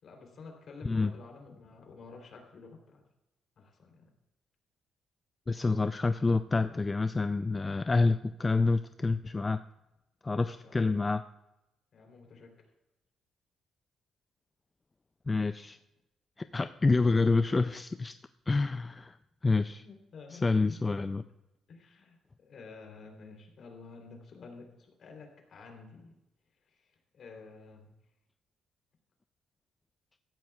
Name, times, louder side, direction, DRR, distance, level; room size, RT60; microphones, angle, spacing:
voice 1, 0.0-3.0 3.6-4.1 10.3-10.9 11.9-12.5 19.8-21.0 21.7-26.1 26.7-27.9, left 4 dB, 55° left, 2 dB, 3.4 m, -51 dB
voice 2, 5.5-9.6 10.2-11.3 15.3-15.8 16.4-18.1 18.5-19.2 19.4-19.8 20.3-21.2, left 3 dB, 25° left, 11 dB, 0.4 m, -28 dB
17.5 x 13.5 x 2.4 m, 0.96 s
cardioid pair, 90°, 0 cm